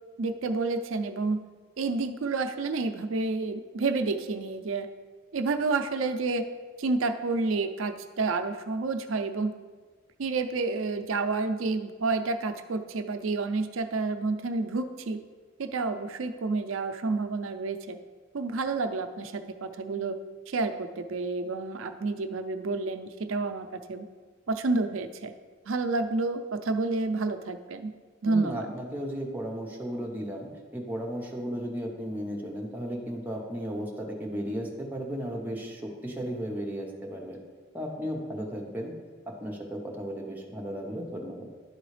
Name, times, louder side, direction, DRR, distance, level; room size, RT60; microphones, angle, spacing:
voice 1, 0.2-1.4 1.8-4.9 5.3-6.4 6.8-9.5 10.2-15.2 15.6-18.0 18.3-20.2 20.5-24.1 24.5-25.3 25.7-27.9 28.2-28.7, right 3 dB, 80° right, 8 dB, 0.5 m, -29 dB
voice 2, 28.3-37.4 37.7-38.9 39.4-41.5, equal, 10° right, -1 dB, 0.9 m, -35 dB
11.5 x 3.9 x 3.2 m, 1.4 s
head